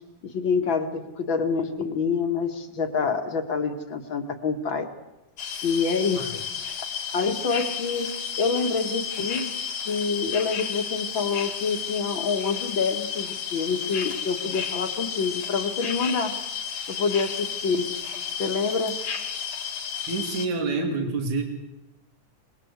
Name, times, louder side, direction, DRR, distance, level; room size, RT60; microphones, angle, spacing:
voice 1, 0.3-4.9 5.6-6.4 7.1-8.1 8.4-9.5 9.9-16.3 16.9-17.9 18.4-19.0, left 5 dB, 45° left, 5 dB, 2.3 m, -26 dB
sound 1, 5.4-20.5, left 7 dB, 80° left, 3.7 m, -32 dB
voice 2, 20.1-21.4, right 3 dB, 70° right, 3 dB, 4.2 m, -27 dB
26.5 x 20.0 x 8.3 m, 1.0 s
omnidirectional pair, 3.5 m